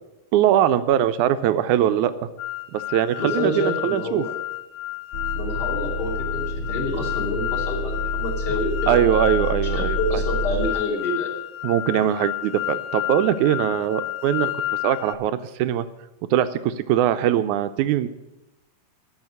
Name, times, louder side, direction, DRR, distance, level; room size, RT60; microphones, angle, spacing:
voice 1, 0.3-2.3 2.7-4.2 8.9-10.0 11.6-14.5 14.8-15.9 16.3-18.1, right 11 dB, 80° right, 12 dB, 2.0 m, -21 dB
sound 1, 2.4-15.2, left 16 dB, 90° left, 2.2 m, -31 dB
voice 2, 3.2-4.3 5.3-9.2 9.7-11.3, left 2 dB, 35° left, -1 dB, 3.2 m, -28 dB
sound 2, 5.1-10.7, equal, 70° left, 0.7 m, -28 dB
12.0 x 6.8 x 9.7 m, 0.98 s
omnidirectional pair, 3.6 m